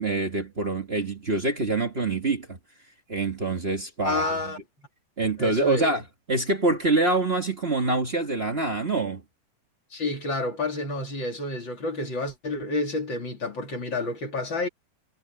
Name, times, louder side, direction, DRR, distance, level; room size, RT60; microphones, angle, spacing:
voice 1, 0.0-2.6 3.1-4.2 5.2-6.0 6.3-9.2, right 2 dB, 30° right, 1.1 m, -25 dB
voice 2, 4.0-4.6 5.4-5.9 9.9-14.7, left 2 dB, 35° left, 3.4 m, -29 dB
omnidirectional pair, 3.8 m